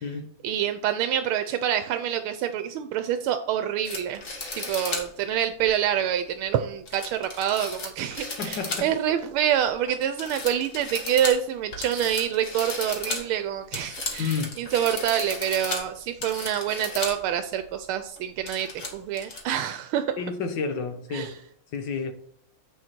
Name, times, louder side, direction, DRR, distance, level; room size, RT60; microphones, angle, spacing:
voice 1, 0.4-4.2 4.6-20.1 21.1-21.3, right 10 dB, 85° right, 1.5 m, -27 dB
sound 1, 3.8-5.1 5.6-5.7 6.9-9.1 9.5-9.9 10.2-17.2 17.6-17.7 18.2-19.4, left 3 dB, 40° left, 1.9 m, -35 dB
voice 2, 8.4-8.9 14.2-14.6 20.2-21.4 21.7-22.1, left 5 dB, 60° left, 1.6 m, -30 dB
7.8 x 6.5 x 4.4 m
omnidirectional pair, 2.3 m